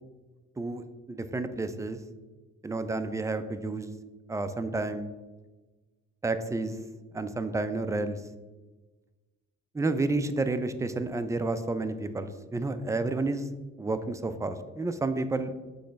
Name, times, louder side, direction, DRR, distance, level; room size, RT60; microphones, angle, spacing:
voice 1, 0.6-2.0 2.6-3.9 4.3-5.1 6.2-6.8 7.1-8.2 9.7-13.5 13.8-15.7, right 2 dB, 10° right, 9 dB, 0.4 m, -30 dB
6.3 x 3.1 x 5.6 m, 1.2 s
cardioid pair, 90°, 30 cm